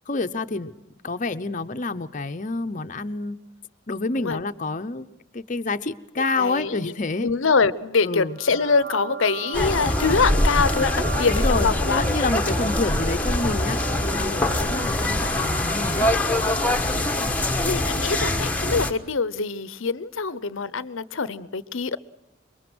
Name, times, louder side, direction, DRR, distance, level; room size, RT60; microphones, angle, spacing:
voice 1, 0.1-0.7 1.0-3.4 3.9-5.1 5.3-7.3 8.0-8.4 11.3-16.1, left 3 dB, 40° left, 0.8 m, -28 dB
voice 2, 6.4-6.9 7.2-12.2 14.6-14.7 16.8-17.4 17.6-22.0, left 4 dB, 75° left, 0.8 m, -24 dB
sound 1, 8.3-17.2, right 5 dB, 85° right, 2.5 m, -36 dB
sound 2, 9.5-18.9, left 1 dB, 5° left, 1.2 m, -23 dB
26.5 x 23.0 x 6.2 m
head